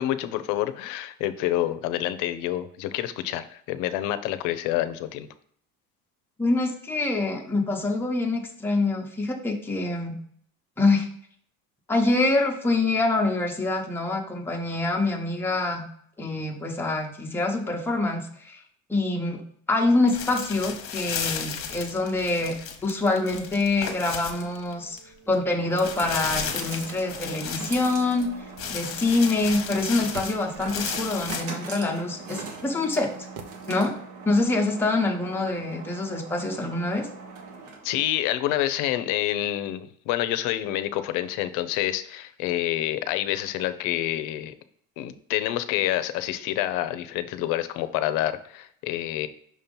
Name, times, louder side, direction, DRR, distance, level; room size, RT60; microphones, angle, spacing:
voice 1, 0.0-5.3 37.8-44.5 45.0-49.3, left 13 dB, 75° left, 13 dB, 0.6 m, -27 dB
voice 2, 6.4-10.2 10.8-11.1 11.9-15.9 16.2-18.6 18.9-19.4 19.7-22.6 22.8-25.0 25.3-28.3 28.7-33.1 33.7-33.9 34.3-37.1, left 2 dB, 5° left, 0 dB, 0.9 m, -25 dB
sound 1, 20.1-25.0 25.3-25.4 25.8-28.3 28.6-31.4, left 7 dB, 45° left, 1.0 m, -34 dB
sound 2, 24.1-38.1, right 4 dB, 70° right, 1.5 m, -41 dB
sound 3, 30.1-31.0 33.4-34.3 34.5-34.6, right 5 dB, 55° right, 0.8 m, -44 dB
6.1 x 2.9 x 5.3 m, 0.63 s
cardioid pair, 150°, 31 cm